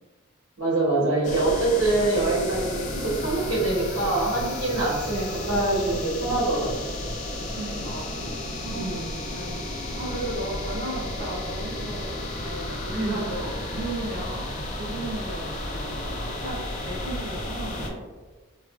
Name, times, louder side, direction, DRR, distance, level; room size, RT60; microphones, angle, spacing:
voice 1, 0.6-6.8 8.7-9.2 12.9-13.2, right 2 dB, 70° right, -6 dB, 1.0 m, -25 dB
sound 1, 1.2-17.9, left 1 dB, 35° left, 0.4 m, -33 dB
voice 2, 7.5-8.1 8.6-8.9 9.3-18.0, right 1 dB, 40° right, -8 dB, 0.8 m, -35 dB
2.9 x 2.5 x 2.3 m, 1.3 s
head